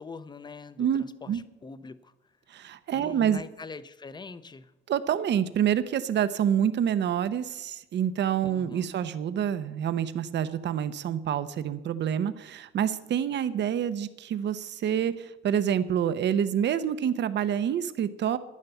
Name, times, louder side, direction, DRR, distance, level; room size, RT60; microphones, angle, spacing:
voice 1, 0.0-2.1 2.9-4.7 8.4-8.9, left 4 dB, 20° left, 15 dB, 0.6 m, -43 dB
voice 2, 0.8-1.4 2.5-3.4 4.9-18.4, right 9 dB, 60° right, 13 dB, 0.8 m, -27 dB
11.0 x 10.5 x 6.9 m, 0.96 s
cardioid pair, 145°, 20 cm